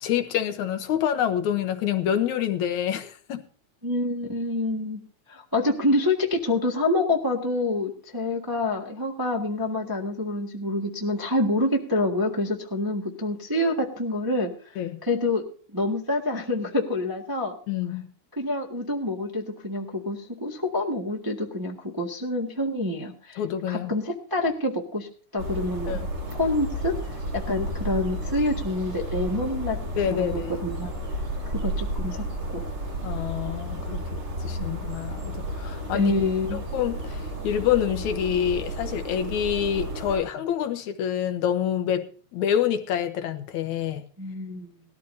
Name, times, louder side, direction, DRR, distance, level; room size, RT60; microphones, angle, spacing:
voice 1, 0.0-3.4 14.8-15.0 17.7-18.0 23.4-23.9 25.9-26.1 30.0-30.5 33.0-36.1 36.5-42.1 42.3-44.0, left 9 dB, 75° left, 2.4 m, -27 dB
voice 2, 3.8-5.0 5.3-14.5 15.0-15.4 15.7-17.5 18.4-23.4 23.7-25.1 25.3-26.0 26.3-26.9 27.3-29.8 30.2-30.9 31.5-32.2 32.5-32.6 35.9-36.6 44.2-44.7, left 2 dB, 15° right, 0.9 m, -27 dB
sound 1, 25.4-40.2, right 1 dB, 90° right, 9.2 m, -32 dB
19.0 x 13.5 x 2.7 m
omnidirectional pair, 3.4 m